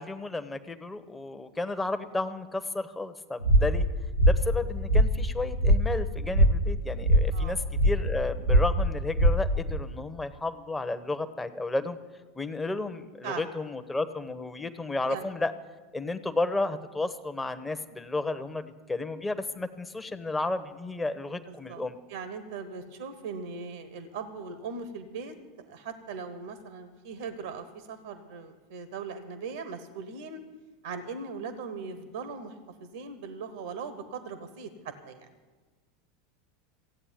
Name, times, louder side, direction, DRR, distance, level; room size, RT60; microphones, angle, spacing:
voice 1, 0.0-3.9 4.2-12.0 12.3-15.5 15.9-22.0, left 2 dB, 10° left, 9 dB, 1.0 m, -32 dB
sound 1, 3.4-9.8, equal, 85° left, 0.9 m, -23 dB
voice 2, 21.5-21.8 22.1-25.3 25.7-30.4 30.8-32.5 32.8-35.3, right 5 dB, 70° right, 11 dB, 1.2 m, -39 dB
15.5 x 8.6 x 8.9 m, 1.3 s
figure-of-eight pair, 80°, 0 cm